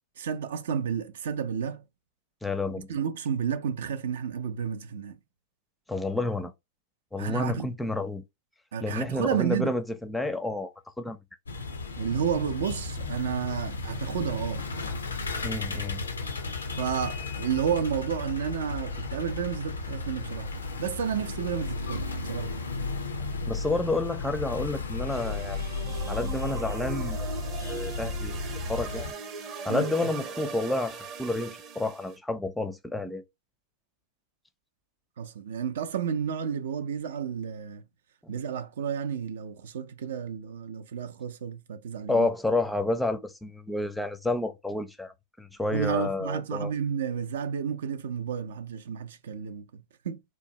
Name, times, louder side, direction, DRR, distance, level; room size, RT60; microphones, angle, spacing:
voice 1, 0.2-1.8 2.9-5.2 7.2-7.7 8.7-9.7 12.0-14.7 16.8-20.5 20.8-22.6 29.7-29.9 35.2-37.8 38.3-42.3 45.7-50.2, right 7 dB, 70° right, 0.4 m, -31 dB
voice 2, 2.4-2.9 5.9-6.5 7.1-8.2 8.8-11.2 15.4-16.0 23.5-25.6 26.1-27.3 27.6-28.4 28.7-29.1 29.6-33.2 38.2-38.3 42.1-45.1 45.4-46.7, left 2 dB, 5° left, 0.5 m, -30 dB
sound 1, 11.5-29.1, left 3 dB, 85° left, 0.5 m, -34 dB
sound 2, 25.1-32.2, right 5 dB, 40° right, 0.7 m, -40 dB
2.9 x 2.1 x 2.7 m
hypercardioid pair, 100°, 0 cm